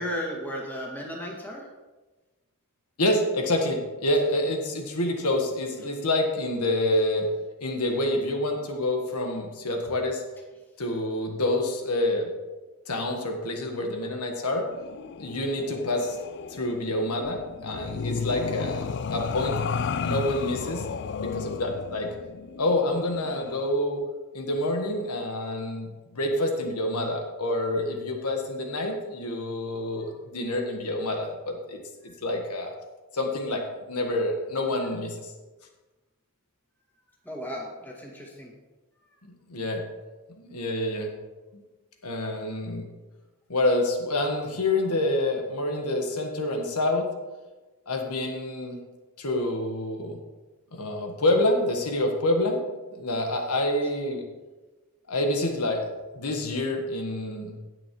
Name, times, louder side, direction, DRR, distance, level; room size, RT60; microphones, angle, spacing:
voice 1, 0.0-1.7 30.0-30.2 32.0-32.1 37.2-38.5, equal, 10° left, -3 dB, 2.1 m, -35 dB
voice 2, 3.0-7.3 7.6-10.2 10.8-12.3 12.9-14.7 15.2-16.2 16.5-19.5 20.0-20.9 21.2-22.1 22.6-24.0 24.3-32.7 33.1-35.3 39.5-39.8 40.4-41.1 42.0-42.9 43.5-47.1 47.9-48.8 49.2-50.2 50.7-52.6 52.9-54.2 55.1-55.9 56.1-57.6, left 1 dB, 90° left, 3 dB, 1.4 m, -27 dB
sound 1, 14.7-23.7, left 6 dB, 50° left, 0.4 m, -33 dB
18.5 x 6.3 x 3.1 m, 1.2 s
head